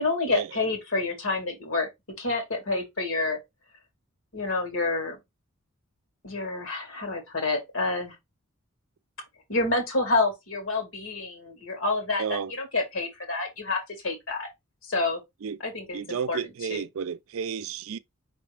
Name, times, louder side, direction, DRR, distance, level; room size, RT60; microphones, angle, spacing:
voice 1, 0.0-1.9 2.2-3.4 4.3-5.2 6.2-8.1 9.5-14.5 14.9-15.2 15.6-16.4 16.7-16.8, left 3 dB, 70° left, 1.8 m, -28 dB
voice 2, 12.2-12.5 15.4-15.6 15.9-18.0, right 7 dB, 70° right, 0.4 m, -32 dB
5.0 x 3.2 x 3.3 m
head